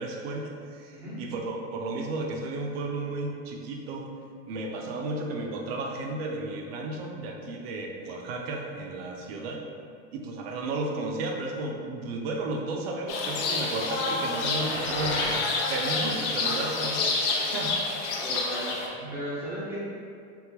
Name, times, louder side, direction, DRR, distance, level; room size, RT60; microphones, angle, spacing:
voice 1, 0.0-4.1 4.5-9.6 10.1-15.4 15.7-17.8 19.0-19.2, right 2 dB, 55° right, 1 dB, 0.5 m, -33 dB
sound 1, 13.1-18.9, left 3 dB, 65° left, 0.6 m, -28 dB
sound 2, 13.4-15.5, equal, 40° left, 1.2 m, -37 dB
voice 2, 18.2-19.8, right 1 dB, 5° right, -9 dB, 0.5 m, -36 dB
3.5 x 2.0 x 2.9 m, 2.3 s
supercardioid pair, 145°, 37 cm